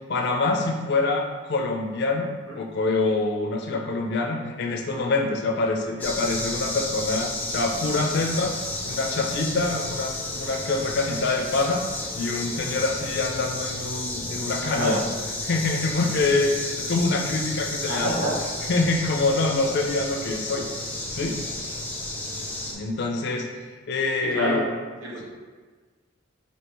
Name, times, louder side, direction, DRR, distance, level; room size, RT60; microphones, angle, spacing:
voice 1, 0.1-8.6 8.8-11.8 12.2-15.0 15.4-18.2 18.7-20.7 21.1-21.4 22.7-23.5 23.9-24.7, left 3 dB, 60° left, 2 dB, 0.5 m, -25 dB
sound 1, 6.0-22.7, left 2 dB, 10° left, 0.5 m, -32 dB
voice 2, 14.6-15.0 17.9-18.3 24.3-24.6 25.0-25.2, equal, 80° right, -5 dB, 1.2 m, -27 dB
4.5 x 2.8 x 3.0 m, 1.5 s
head